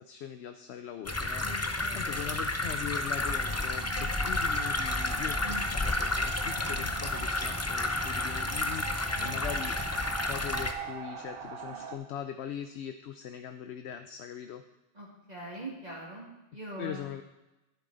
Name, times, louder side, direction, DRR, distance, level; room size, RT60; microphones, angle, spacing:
voice 1, 0.0-9.7 10.2-14.6 16.8-17.2, left 9 dB, 70° left, 8 dB, 0.8 m, -41 dB
sound 1, 1.0-10.7, left 2 dB, 20° left, 0.5 m, -31 dB
voice 2, 1.3-2.3 5.4-5.6 9.1-9.4 14.9-17.1, right 1 dB, 35° right, -4 dB, 2.2 m, -43 dB
sound 2, 2.8-12.0, right 7 dB, 55° right, 1.0 m, -43 dB
11.0 x 10.0 x 4.0 m, 0.97 s
omnidirectional pair, 1.2 m